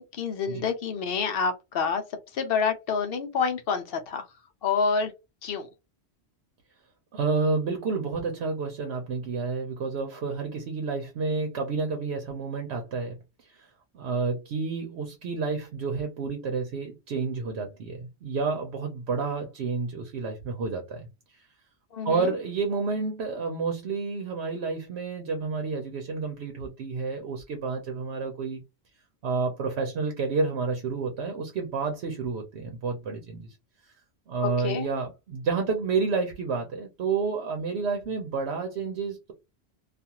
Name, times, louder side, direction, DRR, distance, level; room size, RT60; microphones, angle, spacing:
voice 1, 0.0-2.0 2.3-4.2 4.6-5.1 5.4-5.7 21.9-22.3 34.4-34.9, left 5 dB, 65° left, 0.8 m, -28 dB
voice 2, 7.1-13.7 13.9-21.1 21.3-21.5 22.0-28.6 29.2-33.6 34.3-39.3, right 4 dB, 80° right, 0.9 m, -30 dB
2.4 x 2.4 x 2.8 m
omnidirectional pair, 1.1 m